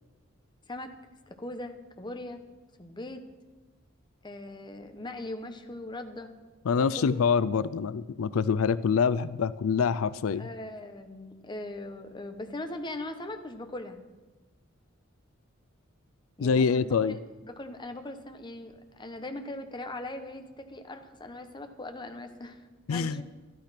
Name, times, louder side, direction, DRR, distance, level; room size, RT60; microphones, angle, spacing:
voice 1, 1.3-2.4 2.8-3.2 4.2-6.3 6.7-7.2 10.4-14.0 16.4-17.2 17.4-23.2, left 1 dB, 20° left, 6 dB, 1.1 m, -40 dB
voice 2, 6.7-10.5 16.4-17.2 22.9-23.2, left 6 dB, 85° left, 17 dB, 0.4 m, -25 dB
13.5 x 12.0 x 5.9 m, 1.2 s
head